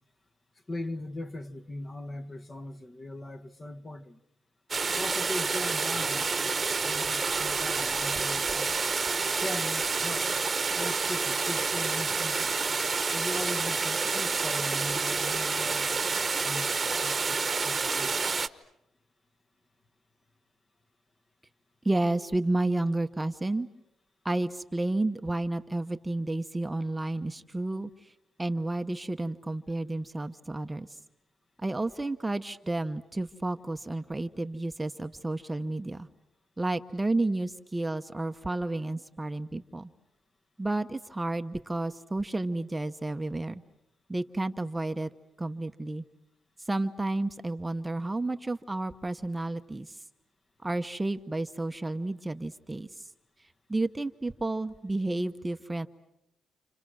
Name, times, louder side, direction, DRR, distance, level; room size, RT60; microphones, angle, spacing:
voice 1, 0.7-4.2 4.9-8.8 9.4-10.3 10.8-12.6 13.1-18.3, left 1 dB, 25° left, 1.3 m, -39 dB
sound 1, 4.7-18.5, right 4 dB, 30° right, 1.2 m, -28 dB
voice 2, 21.8-23.7 24.2-28.1 28.4-31.0 31.6-36.1 36.6-39.9 40.6-43.6 44.1-45.1 45.4-46.0 46.7-50.0 50.6-53.1 53.7-55.9, right 2 dB, 15° right, 0.9 m, -31 dB
30.0 x 28.5 x 6.2 m
cardioid pair, 90°, 0 cm